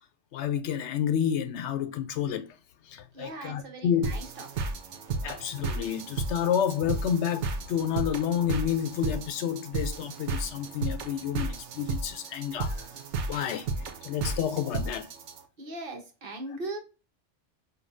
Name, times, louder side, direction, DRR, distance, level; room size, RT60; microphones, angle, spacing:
voice 1, 0.3-2.5 2.9-4.2 5.2-12.8 13.3-13.7 14.0-15.1, left 9 dB, 75° left, 0.8 m, -29 dB
voice 2, 3.1-4.5 15.6-16.8, right 2 dB, 50° right, 1.0 m, -39 dB
sound 1, 4.0-15.4, right 4 dB, 75° right, 0.9 m, -34 dB
5.1 x 2.3 x 2.5 m
omnidirectional pair, 1.2 m